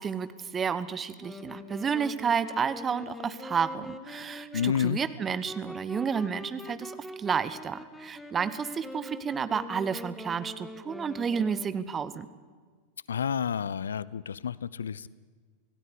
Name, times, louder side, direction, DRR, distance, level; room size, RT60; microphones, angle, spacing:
voice 1, 0.0-12.3, right 6 dB, 20° right, 14 dB, 1.1 m, -31 dB
Wind instrument woodwind instrument, 1.2-12.1, left 1 dB, 5° left, 1.6 m, -44 dB
voice 2, 4.5-5.0 13.1-15.1, left 8 dB, 65° left, 20 dB, 0.5 m, -29 dB
25.5 x 16.5 x 8.2 m, 1.6 s
figure-of-eight pair, 90°, 0 cm